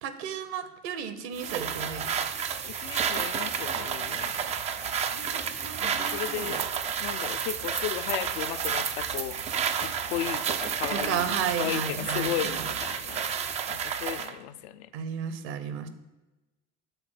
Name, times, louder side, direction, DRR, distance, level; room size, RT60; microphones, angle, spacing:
voice 1, 0.0-2.3 5.1-6.6 10.9-12.7 14.9-15.9, right 7 dB, 55° right, 10 dB, 0.8 m, -34 dB
sound 1, 1.4-14.3, right 7 dB, 20° right, 0.3 m, -31 dB
voice 2, 2.6-4.3 5.8-6.6 7.0-9.4 9.8-11.2 11.6-13.3 13.7-14.9, left 12 dB, 55° left, 11 dB, 0.4 m, -35 dB
6.9 x 3.7 x 5.9 m, 1.1 s
figure-of-eight pair, 65°, 41 cm